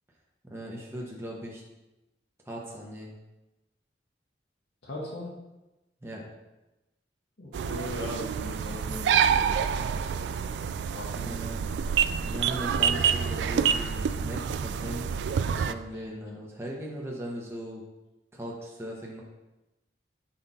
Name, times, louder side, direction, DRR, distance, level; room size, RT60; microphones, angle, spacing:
voice 1, 0.4-1.6 2.4-3.1 6.0-6.2 11.2-11.8 12.2-15.1 15.5-17.8 18.3-19.2, equal, 15° right, -3 dB, 0.9 m, -38 dB
voice 2, 4.8-5.3 7.4-9.7 10.9-11.4 15.9-16.0, left 1 dB, 80° left, -4 dB, 1.3 m, -39 dB
sound 1, 7.5-15.7, right 7 dB, 80° right, 0.3 m, -27 dB
5.8 x 5.1 x 4.1 m, 1.0 s
head